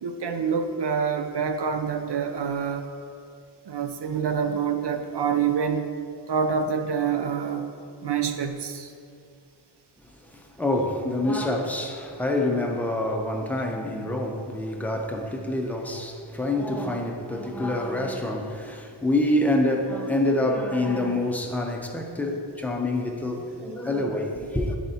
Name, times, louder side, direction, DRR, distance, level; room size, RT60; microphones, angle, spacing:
voice 1, 0.0-2.8 3.7-5.9 6.3-7.7 8.0-8.9, right 6 dB, 60° right, 0.5 m, -26 dB
voice 2, 10.3-24.8, left 1 dB, 5° left, 0.6 m, -26 dB
9.5 x 4.3 x 2.8 m
wide cardioid pair, 60°, 46 cm